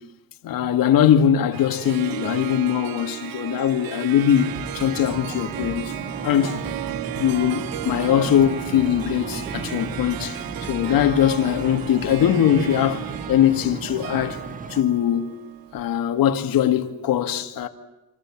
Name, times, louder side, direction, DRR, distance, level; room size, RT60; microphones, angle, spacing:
voice 1, 0.4-5.9 6.2-6.6 7.1-14.4 14.7-15.4 15.7-17.7, left 10 dB, 75° left, 2.2 m, -21 dB
Harp, 1.5-16.0, right 15 dB, 80° right, 0.9 m, -35 dB
sound 1, 4.3-14.8, right 3 dB, 25° right, 1.5 m, -35 dB
26.5 x 25.0 x 7.5 m
cardioid pair, 105°, 35 cm